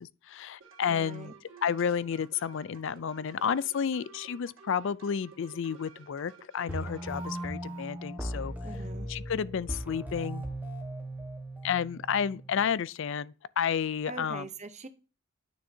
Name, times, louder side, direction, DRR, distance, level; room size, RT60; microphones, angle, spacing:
voice 1, 0.0-1.3 1.6-8.5 9.1-10.5 11.6-14.5, left 7 dB, 60° left, 0.4 m, -31 dB
sound 1, 0.6-7.5, right 5 dB, 60° right, 2.0 m, -53 dB
voice 2, 0.9-1.3 8.6-9.1 14.1-14.9, right 3 dB, 30° right, 0.8 m, -42 dB
sound 2, 6.7-12.7, right 1 dB, 10° right, 1.4 m, -38 dB
9.7 x 6.4 x 2.7 m
head